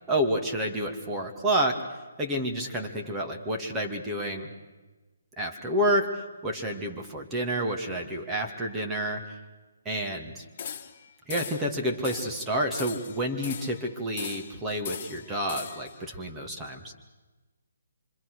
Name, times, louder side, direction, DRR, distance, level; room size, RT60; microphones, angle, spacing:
voice 1, 0.1-1.9 2.2-4.5 5.4-9.4 9.8-10.4 11.3-16.9, equal, 10° right, 1 dB, 2.5 m, -29 dB
sound 1, 10.6-11.0 11.3-11.7 12.0-12.4 12.7-13.8 14.2-14.6 14.8-15.9, left 8 dB, 35° left, 2.1 m, -39 dB
26.5 x 25.5 x 6.7 m, 1.2 s
figure-of-eight pair, 140°, 0 cm